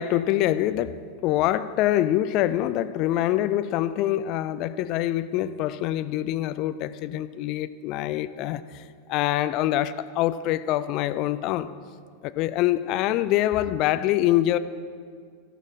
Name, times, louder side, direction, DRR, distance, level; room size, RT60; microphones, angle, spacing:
voice 1, 0.0-8.8 9.1-11.7 12.2-14.6, left 13 dB, 40° left, 14 dB, 0.5 m, -25 dB
17.0 x 12.5 x 3.6 m, 2.1 s
figure-of-eight pair, 90°, 0 cm